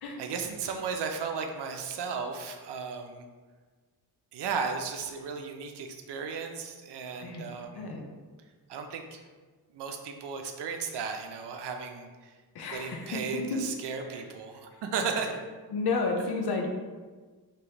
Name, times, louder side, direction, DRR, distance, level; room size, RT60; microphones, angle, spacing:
voice 1, 0.2-3.3 4.3-7.9 8.7-9.2 9.7-12.3 12.7-15.3, right 5 dB, 90° right, 4 dB, 0.6 m, -35 dB
voice 2, 12.5-13.7 14.1-14.2 15.7-16.7, left 3 dB, 70° left, 2 dB, 0.7 m, -31 dB
4.9 x 3.0 x 2.9 m, 1.4 s
wide cardioid pair, 155°, 40 cm